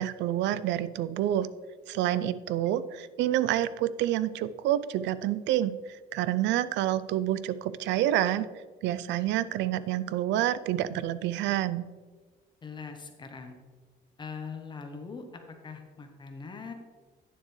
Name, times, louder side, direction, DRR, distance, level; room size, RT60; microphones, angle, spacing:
voice 1, 0.0-1.5 1.9-5.7 6.1-8.5 8.8-11.9, right 12 dB, 85° right, 16 dB, 0.4 m, -28 dB
voice 2, 12.6-13.5 14.2-16.7, left 5 dB, 25° left, 4 dB, 0.9 m, -41 dB
9.5 x 7.3 x 3.2 m, 1.4 s
cardioid pair, 140°, 18 cm